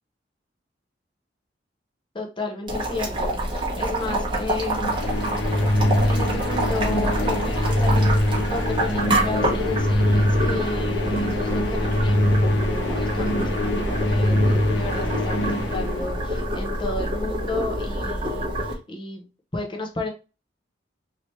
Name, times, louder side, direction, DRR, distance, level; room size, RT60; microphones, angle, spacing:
voice 1, 2.1-5.2 6.0-20.1, left 2 dB, 25° left, 3 dB, 0.7 m, -33 dB
Boiling, 2.7-18.7, equal, 25° right, 0.9 m, -27 dB
sound 1, 4.6-16.5, left 1 dB, 75° left, 0.7 m, -23 dB
3.3 x 2.8 x 3.0 m, 0.31 s
head